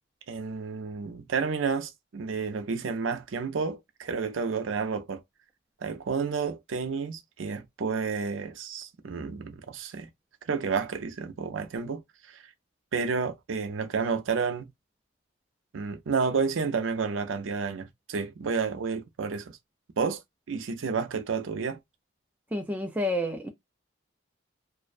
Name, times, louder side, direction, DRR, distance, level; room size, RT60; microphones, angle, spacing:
voice 1, 0.3-5.2 5.8-10.1 10.4-12.0 12.3-12.4 12.9-14.7 15.7-19.6 20.0-20.2 20.5-21.8, right 5 dB, 80° right, 0.5 m, -30 dB
voice 2, 22.5-23.5, left 1 dB, 10° right, 0.3 m, -29 dB
2.4 x 2.1 x 2.4 m
head